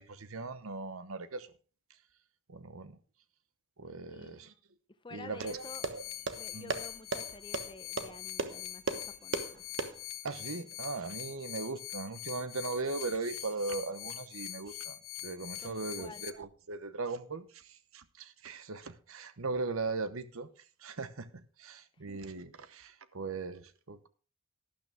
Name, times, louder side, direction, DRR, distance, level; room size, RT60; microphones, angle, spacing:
voice 1, 0.0-1.5 2.5-3.0 3.8-4.5 5.1-6.0 6.5-6.7 10.2-15.0 15.2-20.5 20.8-24.1, right 3 dB, 75° right, 0.9 m, -39 dB
voice 2, 4.1-4.4 5.0-5.9 6.3-9.6 15.6-16.3 22.1-22.2, left 3 dB, 20° left, 0.6 m, -50 dB
sound 1, 5.4-10.3, right 3 dB, 55° right, 1.1 m, -38 dB
sound 2, 5.5-16.3, left 13 dB, 75° left, 1.1 m, -44 dB
12.0 x 11.5 x 3.5 m
head